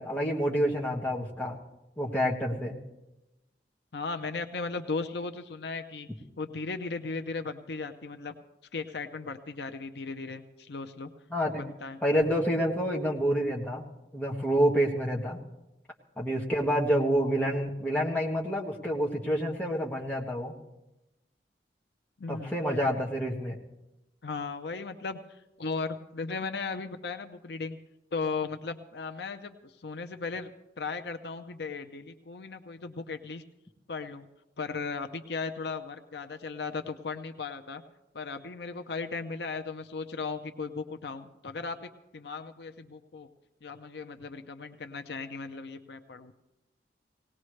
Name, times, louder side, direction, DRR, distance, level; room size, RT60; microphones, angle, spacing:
voice 1, 0.0-1.6 2.0-2.7 11.3-11.6 12.0-13.8 14.1-15.4 16.2-20.6 22.3-23.6, equal, 10° left, -2 dB, 1.6 m, -28 dB
voice 2, 3.9-6.1 6.4-8.4 8.7-11.1 11.5-12.0 22.2-22.8 24.2-27.8 28.1-30.5 30.8-33.4 33.9-34.3 34.6-37.8 38.1-43.3 43.6-46.3, left 4 dB, 70° left, 7 dB, 0.7 m, -36 dB
18.5 x 18.5 x 3.2 m, 0.94 s
head